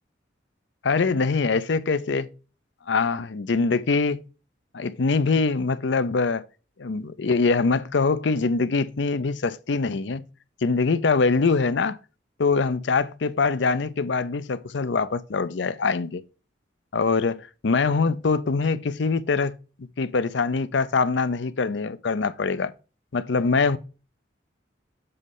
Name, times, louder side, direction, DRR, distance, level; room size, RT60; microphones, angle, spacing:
voice 1, 0.8-2.3 2.9-4.2 4.7-6.5 6.8-10.2 10.6-12.0 12.4-16.2 16.9-19.6 20.0-22.7 23.1-23.8, left 4 dB, 70° left, 0.5 m, -23 dB
7.7 x 3.2 x 5.4 m
head